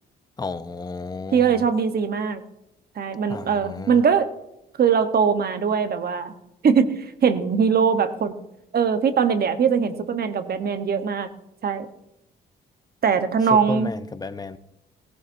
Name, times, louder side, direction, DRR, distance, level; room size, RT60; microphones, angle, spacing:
voice 1, 0.4-1.6 3.3-4.0 13.5-14.6, left 3 dB, 20° left, 0.7 m, -33 dB
voice 2, 1.3-2.4 3.0-4.3 4.8-6.3 6.6-8.3 8.7-11.3 11.6-11.9 13.0-13.9, right 6 dB, 50° right, 1.1 m, -21 dB
17.0 x 15.0 x 2.7 m
cardioid pair, 90°, 20 cm